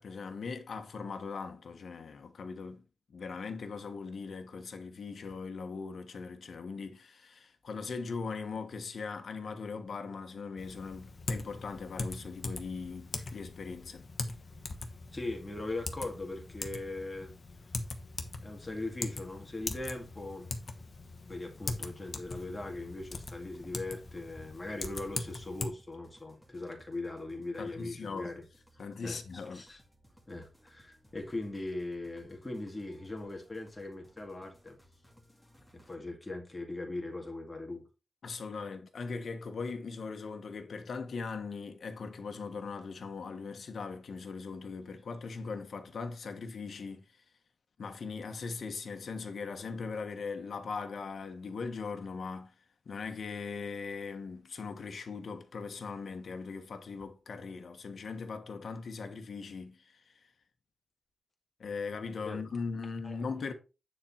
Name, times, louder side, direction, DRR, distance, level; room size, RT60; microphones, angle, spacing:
voice 1, 0.0-2.8 3.1-14.1 27.3-28.3 28.8-29.6 38.2-47.2 47.8-52.5 52.8-60.1 61.6-63.5, left 4 dB, 65° left, 1.3 m, -40 dB
Typing, 10.6-25.7, left 3 dB, 45° left, 1.2 m, -41 dB
voice 2, 15.1-17.3 18.4-20.5 21.3-28.4 28.7-29.2 29.5-29.8 30.3-34.8 35.7-37.9 62.2-62.4 63.0-63.2, left 2 dB, 15° left, 2.1 m, -40 dB
sound 1, 18.8-36.0, equal, ahead, 2.0 m, -63 dB
9.6 x 4.4 x 4.3 m
wide cardioid pair, 170°, 0 cm